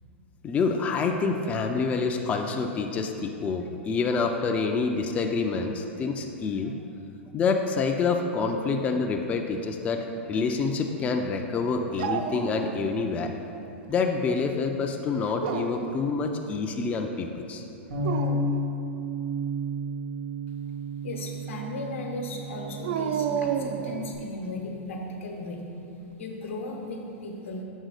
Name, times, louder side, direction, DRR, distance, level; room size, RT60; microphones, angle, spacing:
voice 1, 0.4-6.7 7.3-13.3 13.9-17.6, left 4 dB, 20° left, 3 dB, 0.4 m, -27 dB
Dog, 12.0-13.1 13.5-14.2 15.2-16.0 17.9-18.6 22.8-24.2, right 7 dB, 60° right, 0.4 m, -31 dB
Bass guitar, 17.9-24.2, right 1 dB, 85° right, 1.4 m, -32 dB
voice 2, 21.0-25.6 26.2-27.6, left 2 dB, 80° left, 1 dB, 0.9 m, -36 dB
6.4 x 3.6 x 4.8 m, 2.8 s
hypercardioid pair, 120°, 7 cm